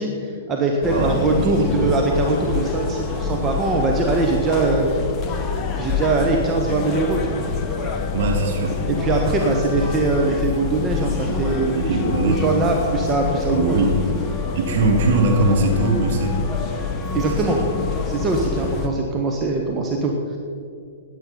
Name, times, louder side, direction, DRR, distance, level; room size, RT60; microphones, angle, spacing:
voice 1, 0.0-4.9 5.8-7.4 8.9-11.9 12.3-13.9 17.1-17.6 18.0-20.4, right 3 dB, 25° right, 1 dB, 1.4 m, -22 dB
sound 1, 0.8-18.9, left 5 dB, 25° left, 1.4 m, -26 dB
voice 2, 0.9-1.7 8.1-8.8 11.7-12.5 13.5-14.0 14.5-16.5 17.3-17.4 17.7-17.8, right 2 dB, 55° right, 0 dB, 2.9 m, -21 dB
16.0 x 10.5 x 4.4 m, 2.4 s
figure-of-eight pair, 115°, 0 cm